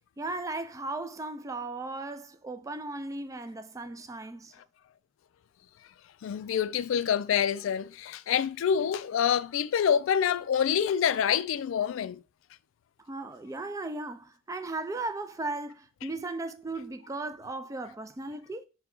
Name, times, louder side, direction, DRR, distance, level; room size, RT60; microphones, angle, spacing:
voice 1, 0.2-4.6 13.0-18.7, right 2 dB, 15° right, 0.3 m, -36 dB
voice 2, 6.2-12.2, left 8 dB, 75° left, 0.3 m, -26 dB
5.9 x 2.2 x 3.7 m
head